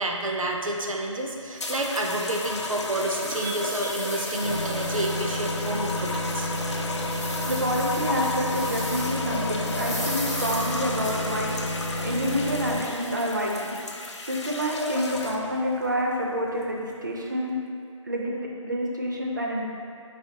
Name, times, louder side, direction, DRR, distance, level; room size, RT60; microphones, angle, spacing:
voice 1, 0.0-6.5, right 1 dB, 85° right, 1 dB, 0.6 m, -29 dB
sound 1, 1.5-1.6 2.1-2.2 2.7-5.6 6.0-6.1 6.6-9.3 9.6-11.6, equal, 10° left, 0.5 m, -38 dB
sound 2, 1.6-15.6 16.5-16.8, left 2 dB, 60° left, 0.5 m, -34 dB
sound 3, 4.4-12.8, left 1 dB, 40° left, 0.8 m, -31 dB
voice 2, 7.5-11.8 12.0-13.8 14.2-17.6 18.1-19.8, equal, 35° right, -1 dB, 0.4 m, -28 dB
4.3 x 3.4 x 2.7 m, 2.3 s
figure-of-eight pair, 170°, 17 cm